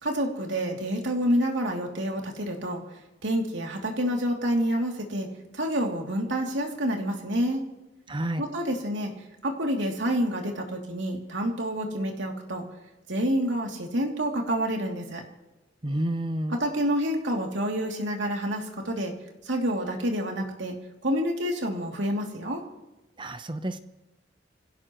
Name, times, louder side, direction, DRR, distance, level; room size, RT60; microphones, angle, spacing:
voice 1, 0.0-2.8 3.2-5.3 5.5-7.6 8.4-9.1 9.4-12.6 13.1-15.2 16.5-19.1 19.4-20.7 21.0-22.6, equal, 85° right, 1 dB, 2.8 m, -28 dB
voice 2, 8.1-8.5 15.8-16.6 23.2-23.8, right 1 dB, 25° right, 9 dB, 0.8 m, -30 dB
26.0 x 16.5 x 3.1 m, 1.0 s
head